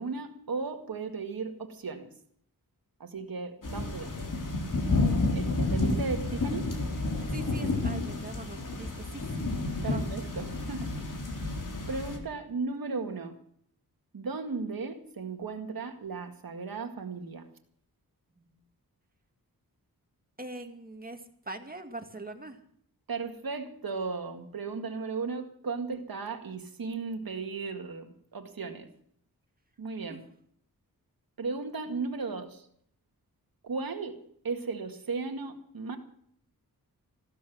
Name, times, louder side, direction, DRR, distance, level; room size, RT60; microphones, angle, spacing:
voice 1, 0.0-2.1 3.0-4.1 5.3-6.7 9.8-11.1 11.9-13.4 14.1-17.5 23.1-28.9 29.8-30.3 31.4-32.7 33.6-36.0, right 4 dB, 70° right, 5 dB, 2.0 m, -36 dB
sound 1, 3.6-12.2, left 2 dB, 55° left, 3.4 m, -30 dB
voice 2, 7.3-9.5 9.9-10.1 18.4-18.5 20.4-22.6 30.1-30.2, right 2 dB, 25° right, 5 dB, 2.1 m, -42 dB
15.5 x 13.5 x 6.2 m, 0.64 s
wide cardioid pair, 90°, 36 cm